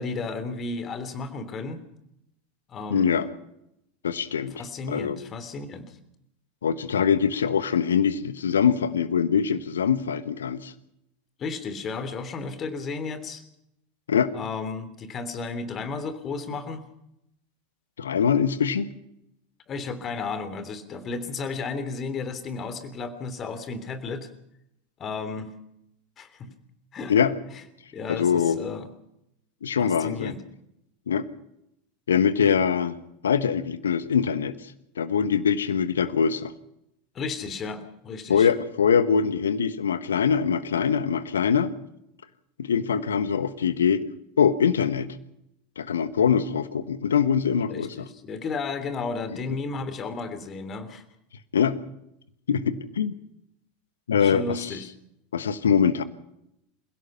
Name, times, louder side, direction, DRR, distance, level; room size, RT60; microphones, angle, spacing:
voice 1, 0.0-1.8 2.7-3.2 4.6-6.0 11.4-13.4 14.3-16.8 19.7-24.3 25.0-25.5 26.2-26.5 26.9-27.1 27.9-28.9 29.8-30.4 37.1-38.5 47.7-51.0 54.2-54.9, left 4 dB, 30° left, 10 dB, 3.2 m, -33 dB
voice 2, 2.9-3.3 4.0-4.5 4.9-5.2 6.6-10.7 14.1-14.3 18.0-18.9 27.1-27.3 28.1-28.6 29.6-30.3 31.1-31.3 32.1-33.0 33.2-36.5 38.3-41.7 42.6-44.0 44.4-45.2 45.8-48.1 51.5-51.8 52.5-53.1 54.1-54.8 55.3-56.0, left 7 dB, 70° left, 15 dB, 1.3 m, -23 dB
28.0 x 16.5 x 5.7 m, 0.80 s
figure-of-eight pair, 80°, 0 cm